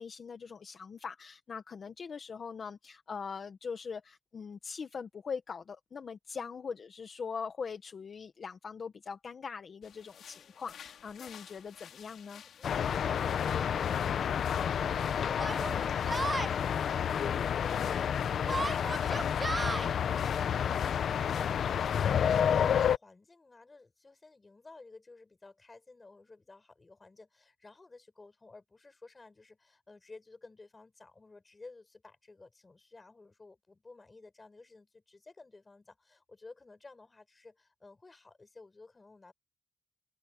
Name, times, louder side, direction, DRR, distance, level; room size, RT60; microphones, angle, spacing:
voice 1, 0.0-12.4, left 5 dB, 45° left, 1.3 m, -41 dB
sound 1, 9.8-22.4, left 8 dB, 85° left, 4.2 m, -54 dB
voice 2, 10.3-10.6 12.3-39.3, left 3 dB, 25° left, 5.6 m, -54 dB
sound 2, 12.6-23.0, left 8 dB, 70° left, 0.8 m, -30 dB
Yell, 13.1-13.2 14.1-14.2 15.4-16.5 18.5-19.9, right 2 dB, 20° right, 0.4 m, -35 dB
open air
wide cardioid pair, 140°, 0 cm